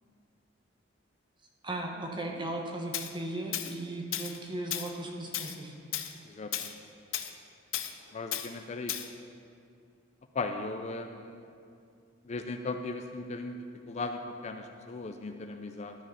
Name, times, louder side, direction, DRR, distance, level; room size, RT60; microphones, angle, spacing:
voice 1, 1.6-5.7, right 1 dB, 25° right, 1 dB, 1.0 m, -37 dB
Tools, 2.9-3.1 3.5-3.7 4.1-4.4 4.7-4.9 5.3-5.6 5.9-6.1 6.5-6.7 7.1-7.3 7.7-7.9 8.3-8.5 8.9-9.1, left 11 dB, 80° left, 0.5 m, -34 dB
voice 2, 6.2-6.8 8.1-8.9 10.3-11.5 12.2-13.6 13.9-16.0, left 3 dB, 35° left, 6 dB, 0.4 m, -37 dB
12.5 x 4.8 x 5.6 m, 2.4 s
head